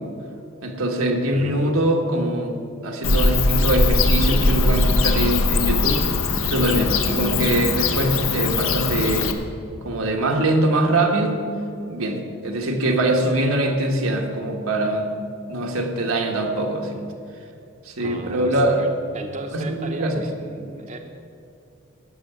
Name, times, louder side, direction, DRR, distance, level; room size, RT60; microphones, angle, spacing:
voice 1, 0.6-2.6 2.8-6.0 6.4-9.3 9.8-11.4 11.9-15.1 15.5-17.0 17.8-18.8 19.7-20.2, right 1 dB, 85° right, 2 dB, 1.6 m, -22 dB
voice 2, 1.3-1.8 18.0-21.0, right 2 dB, 35° right, 4 dB, 0.7 m, -34 dB
Bird / Cricket, 3.0-9.3, left 3 dB, 80° left, 1.0 m, -20 dB
13.0 x 6.7 x 9.4 m, 2.5 s
head